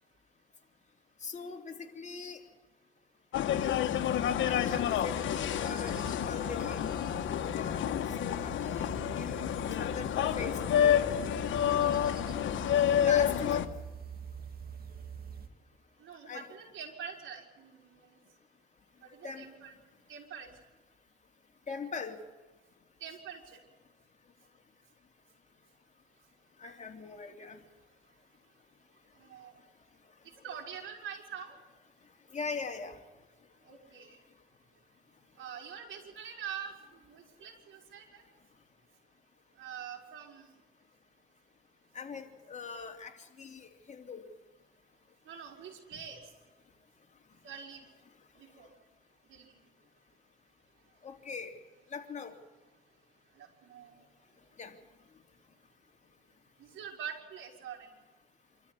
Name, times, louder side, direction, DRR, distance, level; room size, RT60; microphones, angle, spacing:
voice 1, 1.2-2.4 4.4-6.8 7.5-7.9 8.2-8.9 9.2-11.0 13.0-13.6 16.3-16.4 19.2-19.4 21.7-22.2 26.6-27.6 32.3-33.0 41.9-43.1 43.4-44.2 45.9-46.0 51.0-51.5 51.9-52.3 54.6-54.8, left 5 dB, 35° left, 3 dB, 3.3 m, -41 dB
sound 1, 3.3-13.7, left 10 dB, 75° left, 1.4 m, -29 dB
sound 2, 3.5-15.5, right 7 dB, 50° right, 2.0 m, -45 dB
voice 2, 16.0-18.2 19.0-19.8 20.1-20.5 23.0-23.6 29.2-29.6 30.4-31.6 33.6-34.2 35.4-36.8 37.0-38.2 39.5-40.5 45.2-46.2 47.4-47.8 48.3-48.7 49.3-49.6 53.3-54.1 56.6-57.9, right 8 dB, 75° right, 0 dB, 5.1 m, -45 dB
26.5 x 13.5 x 9.8 m, 1.2 s
cardioid pair, 90°, 20 cm